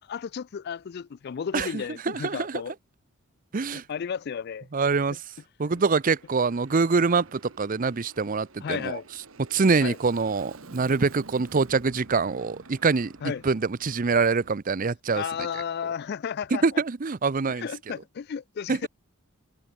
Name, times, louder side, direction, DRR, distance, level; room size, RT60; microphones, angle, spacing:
voice 1, 0.1-2.7 3.7-4.7 8.6-9.0 9.8-10.0 13.2-13.4 15.1-16.6 17.6-18.9, left 7 dB, 50° left, 0.3 m, -33 dB
voice 2, 1.5-2.6 3.5-3.8 4.7-5.2 5.6-9.0 9.5-15.2 16.5-17.7 18.7-18.9, right 4 dB, 40° right, 0.6 m, -25 dB
Aircraft, 5.7-14.5, right 3 dB, 75° right, 1.5 m, -50 dB
head